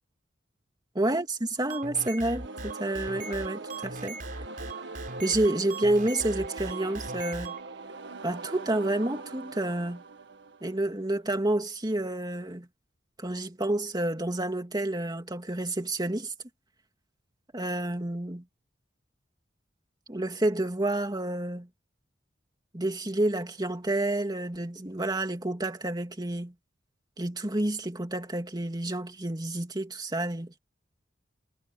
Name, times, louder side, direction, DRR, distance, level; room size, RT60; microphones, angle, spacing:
voice 1, 0.9-4.2 5.2-7.5 8.2-10.0 10.6-12.7 13.2-16.3 17.5-18.4 20.1-21.7 22.7-26.5 27.2-30.5, right 1 dB, 20° right, 2.7 m, -29 dB
sound 1, 1.5-7.6, right 3 dB, 50° right, 4.5 m, -40 dB
sound 2, 2.2-11.1, right 3 dB, 70° right, 1.6 m, -42 dB
head